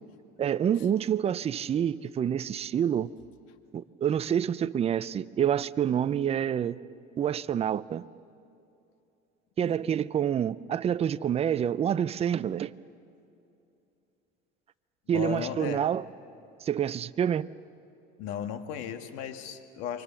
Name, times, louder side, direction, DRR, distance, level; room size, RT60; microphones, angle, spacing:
voice 1, 0.4-3.1 3.7-6.8 7.2-8.0 9.6-12.7 15.1-16.0 16.6-17.5, right 9 dB, 30° right, 0.5 m, -27 dB
voice 2, 15.1-15.8 18.2-20.0, left 9 dB, 85° left, 1.8 m, -36 dB
29.0 x 24.5 x 7.0 m
cardioid pair, 125°, 21 cm